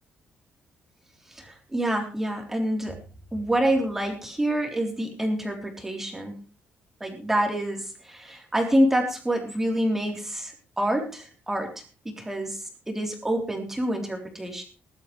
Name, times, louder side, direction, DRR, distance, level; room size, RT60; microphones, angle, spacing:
voice 1, 1.3-3.0 3.3-6.4 7.0-11.7 12.1-14.6, right 1 dB, 10° right, 2 dB, 3.6 m, -27 dB
20.5 x 12.0 x 3.3 m, 0.35 s
cardioid pair, 175°, 4 cm